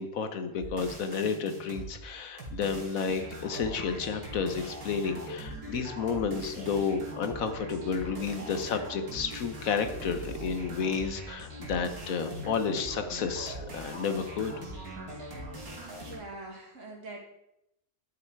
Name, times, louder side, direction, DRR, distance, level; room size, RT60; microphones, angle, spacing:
voice 1, 0.0-14.6, left 5 dB, 70° left, 8 dB, 1.3 m, -31 dB
sound 1, 0.6-1.9 2.4-16.2, right 1 dB, 90° right, 2.6 m, -41 dB
voice 2, 14.9-15.3 16.0-17.2, right 2 dB, 55° right, -1 dB, 2.5 m, -44 dB
10.5 x 7.5 x 4.6 m, 0.83 s
omnidirectional pair, 1.5 m